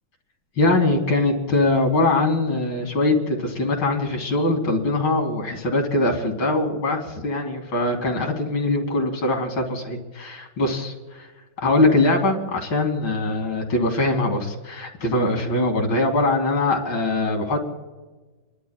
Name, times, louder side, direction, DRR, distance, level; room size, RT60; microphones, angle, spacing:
voice 1, 0.6-10.9 11.6-17.6, left 2 dB, 80° left, 3 dB, 2.8 m, -22 dB
29.5 x 11.5 x 2.3 m, 1.3 s
omnidirectional pair, 2.1 m